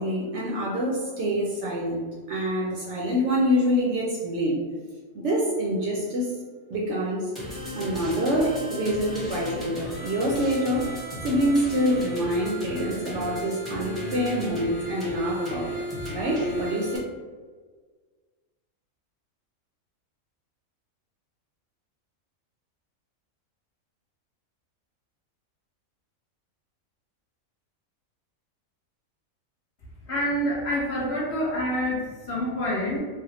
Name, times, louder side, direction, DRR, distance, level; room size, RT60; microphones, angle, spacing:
voice 1, 0.0-4.6 5.1-6.4 6.7-7.3 7.7-15.8 16.1-17.0, equal, 65° right, -2 dB, 0.8 m, -26 dB
sound 1, 7.3-17.0, equal, ahead, 0.6 m, -34 dB
voice 2, 30.1-33.0, equal, 55° left, -6 dB, 1.1 m, -27 dB
3.3 x 2.1 x 2.9 m, 1.5 s
omnidirectional pair, 1.4 m